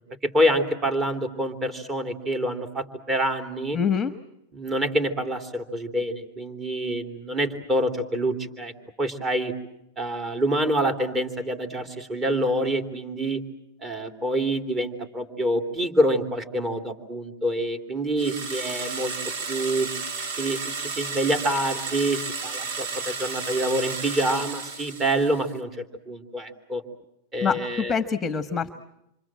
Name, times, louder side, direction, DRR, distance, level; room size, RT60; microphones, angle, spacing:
voice 1, 0.2-3.8 4.5-8.7 9.0-9.5 10.0-13.4 13.8-19.1 19.5-19.9 20.4-25.7 26.1-26.8 27.3-27.9, right 1 dB, 20° right, 6 dB, 3.3 m, -26 dB
voice 2, 3.7-4.1 27.4-28.7, left 6 dB, 15° left, 9 dB, 1.3 m, -25 dB
sound 1, 18.2-25.5, right 4 dB, 60° right, 2.5 m, -33 dB
28.0 x 25.5 x 7.6 m, 0.83 s
supercardioid pair, 130°, 0 cm